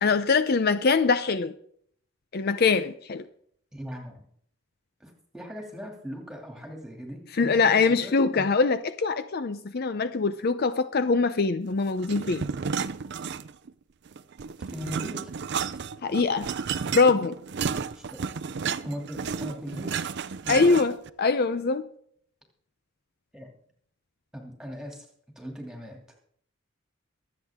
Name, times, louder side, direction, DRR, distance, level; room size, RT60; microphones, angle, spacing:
voice 1, 0.0-1.5 2.3-3.3 7.4-12.5 16.0-16.5 16.9-17.3 20.5-21.9, left 4 dB, 50° left, 11 dB, 0.5 m, -23 dB
voice 2, 3.7-4.2 5.0-8.5 14.7-15.3 17.7-18.0 18.8-20.0 20.4-20.7 23.3-23.5 24.3-25.1 25.4-26.0, equal, 5° right, 1 dB, 2.6 m, -39 dB
sound 1, 12.0-13.7 14.1-21.1, right 6 dB, 55° right, 0.5 m, -32 dB
23.0 x 8.1 x 3.6 m, 0.65 s
head